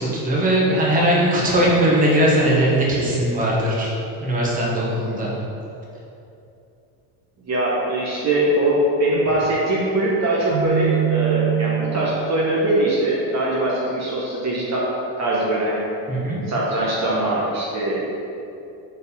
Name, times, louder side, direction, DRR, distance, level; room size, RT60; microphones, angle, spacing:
voice 1, 0.0-3.9 4.2-5.3 16.1-16.4, right 1 dB, 15° right, -5 dB, 1.2 m, -19 dB
voice 2, 7.5-14.9 15.2-15.8 16.5-18.0, right 1 dB, 35° right, -5 dB, 1.1 m, -21 dB
Keyboard (musical), 10.5-12.4, right 11 dB, 55° right, 1.2 m, -23 dB
4.7 x 4.4 x 5.5 m, 2.8 s
cardioid pair, 135°, 47 cm